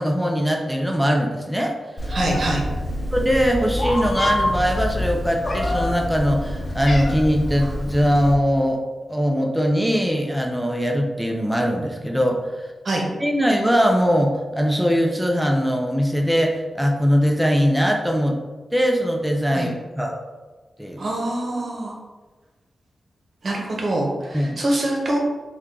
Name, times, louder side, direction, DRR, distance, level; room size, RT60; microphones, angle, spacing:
voice 1, 0.0-1.7 2.1-2.2 3.1-8.8 9.1-12.7 13.2-18.4 18.7-20.2 20.8-21.0 24.3-24.6, equal, 5° right, 1 dB, 0.5 m, -21 dB
Meow, 2.0-8.3, left 1 dB, 50° left, 0.6 m, -26 dB
voice 2, 2.1-2.6 12.8-13.1 19.5-19.7 21.0-22.0 23.4-25.2, right 1 dB, 65° right, -1 dB, 0.8 m, -24 dB
3.1 x 2.3 x 3.7 m, 1.3 s
cardioid pair, 45°, 0 cm